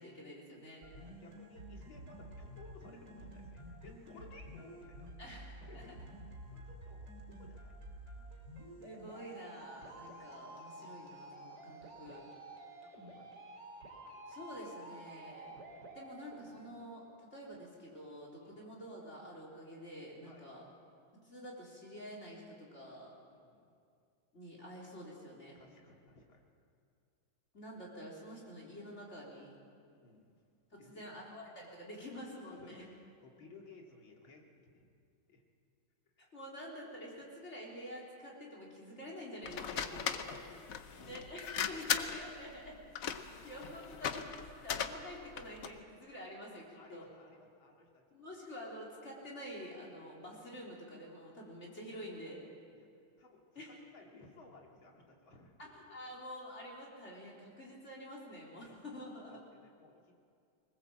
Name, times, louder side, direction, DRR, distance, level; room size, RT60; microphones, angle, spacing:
voice 1, 0.0-0.8 5.2-5.9 8.2-8.3 8.8-12.3 14.3-15.5 15.9-20.6 21.1-23.1 24.3-25.6 27.5-29.6 30.7-32.8 36.2-40.3 41.1-41.4 41.7-42.8 43.2-47.1 48.1-52.5 53.6-53.7 55.6-59.4, equal, 35° left, -3 dB, 4.1 m, -48 dB
sound 1, 0.8-16.8, right 1 dB, 55° right, 3.7 m, -51 dB
voice 2, 1.0-5.1 5.6-6.0 6.5-8.0 12.8-13.4 14.2-14.3 18.4-18.6 20.2-20.5 23.3-23.7 25.5-26.4 29.9-30.3 30.8-31.1 32.5-34.4 34.7-34.9 35.3-35.4 36.2-36.3 39.5-41.3 41.5-42.4 43.5-43.6 46.7-48.0 52.7-52.9 53.2-56.2 58.5-58.7 59.3-60.1, left 3 dB, 75° left, 0 dB, 3.1 m, -58 dB
sound 2, 39.4-45.8, left 8 dB, 55° left, 1.0 m, -38 dB
21.0 x 20.0 x 7.6 m, 2.4 s
omnidirectional pair, 2.2 m